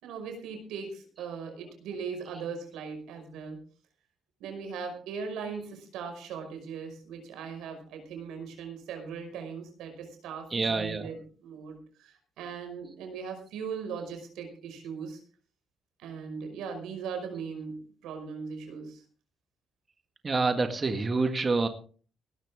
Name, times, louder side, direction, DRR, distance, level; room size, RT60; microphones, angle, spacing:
voice 1, 0.0-3.6 4.4-15.2 16.0-19.0, right 6 dB, 90° right, 6 dB, 5.4 m, -39 dB
voice 2, 10.5-11.1 20.2-21.7, right 3 dB, 30° right, 7 dB, 1.7 m, -27 dB
18.0 x 13.0 x 3.6 m, 0.40 s
cardioid pair, 90°, 0 cm